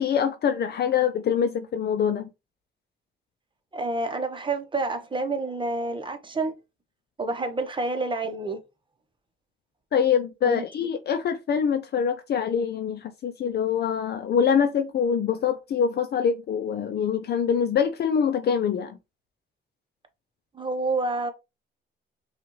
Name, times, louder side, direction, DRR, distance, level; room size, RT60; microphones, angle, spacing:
voice 1, 0.0-2.3 9.9-19.0, left 7 dB, 55° left, 0.5 m, -24 dB
voice 2, 3.7-6.5 7.2-8.6 10.4-10.6 20.5-21.3, right 2 dB, 25° right, 1.0 m, -28 dB
5.7 x 2.5 x 3.0 m
cardioid pair, 90°, 20 cm